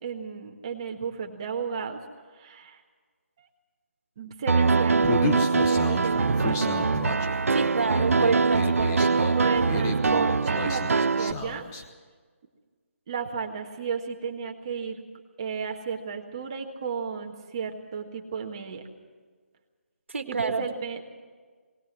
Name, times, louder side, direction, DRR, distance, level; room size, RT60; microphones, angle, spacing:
voice 1, 0.0-2.0 2.4-2.8 3.4-3.5 4.2-6.7 9.3-11.6 13.1-15.0 15.4-18.8 20.3-21.0, right 6 dB, 20° right, 2 dB, 1.6 m, -33 dB
Piano, 4.5-11.3, right 4 dB, 80° right, 0.6 m, -23 dB
Human voice, 5.0-11.8, left 3 dB, 10° left, 0.9 m, -33 dB
voice 2, 7.5-9.4 20.1-20.6, right 4 dB, 60° right, 7 dB, 1.9 m, -28 dB
19.5 x 19.5 x 7.4 m, 1.5 s
hypercardioid pair, 175°, 7 cm